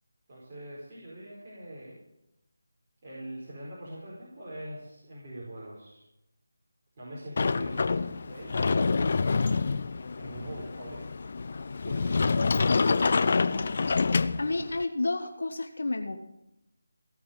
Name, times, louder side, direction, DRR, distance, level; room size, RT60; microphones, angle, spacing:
voice 1, 0.3-2.0 3.0-6.0 7.0-8.9 9.3-9.6 10.1-11.0 11.8-12.2, right 1 dB, 30° right, -7 dB, 4.9 m, -43 dB
Sliding door, 7.4-14.8, left 4 dB, 50° left, 0.6 m, -27 dB
voice 2, 14.4-16.2, left 2 dB, 70° left, 6 dB, 1.4 m, -30 dB
17.0 x 6.2 x 9.2 m, 0.86 s
figure-of-eight pair, 165°, 0 cm